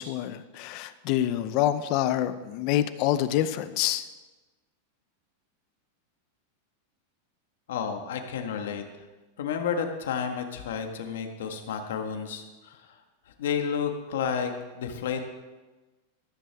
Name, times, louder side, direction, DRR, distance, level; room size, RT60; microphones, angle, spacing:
voice 1, 0.0-4.0, left 12 dB, 35° left, 12 dB, 0.6 m, -26 dB
voice 2, 7.7-8.8 9.4-13.0 13.3-15.2, left 7 dB, 75° left, 5 dB, 1.5 m, -31 dB
14.0 x 13.5 x 3.5 m, 1.2 s
supercardioid pair, 175°, 0 cm